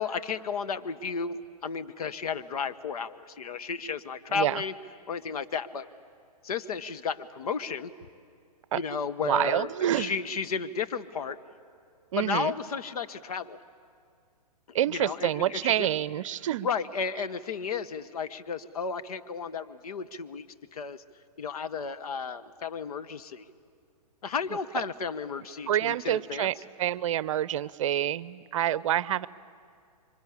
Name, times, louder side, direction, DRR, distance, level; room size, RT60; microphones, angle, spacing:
voice 1, 0.0-4.7 5.1-5.9 6.4-7.9 8.7-11.4 12.2-13.6 14.7-15.9 16.6-20.5 20.7-21.0 21.4-23.4 24.2-26.5, left 6 dB, 65° left, 10 dB, 1.2 m, -33 dB
voice 2, 4.3-4.6 8.7-8.8 9.2-10.1 12.1-12.5 14.7-16.7 25.7-29.3, right 11 dB, 50° right, 19 dB, 0.7 m, -27 dB
27.0 x 24.5 x 8.6 m, 2.2 s
figure-of-eight pair, 125°, 21 cm